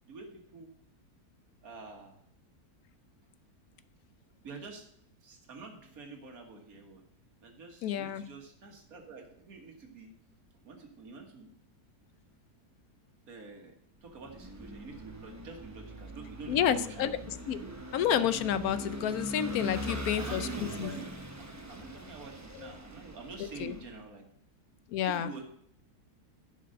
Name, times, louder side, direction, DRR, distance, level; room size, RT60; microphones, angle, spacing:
voice 1, 0.0-0.8 1.6-2.2 4.4-4.9 5.2-7.0 7.4-10.1 10.6-11.5 13.3-13.7 14.0-17.1 17.6-17.8 19.8-21.1 21.7-24.3 25.1-25.4, right 4 dB, 60° right, 2 dB, 2.0 m, -47 dB
voice 2, 7.8-8.2 16.5-17.6 17.9-20.5 20.8-20.9 22.6-22.7 23.6-23.7 24.9-25.3, left 9 dB, 70° left, 13 dB, 1.0 m, -30 dB
Vehicle / Engine, 14.1-23.9, equal, 15° right, 0.7 m, -41 dB
11.0 x 5.1 x 6.5 m, 0.68 s
omnidirectional pair, 1.7 m